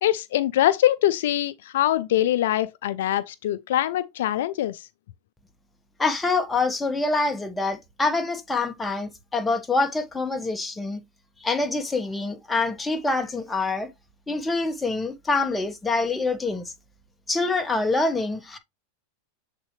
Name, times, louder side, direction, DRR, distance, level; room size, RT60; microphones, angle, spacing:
voice 1, 0.0-4.8, left 13 dB, 75° left, 0.4 m, -23 dB
voice 2, 6.0-11.0 11.4-13.9 14.3-16.7 17.3-18.6, left 3 dB, 10° left, 1.3 m, -25 dB
7.4 x 4.1 x 3.2 m
hypercardioid pair, 110°, 0 cm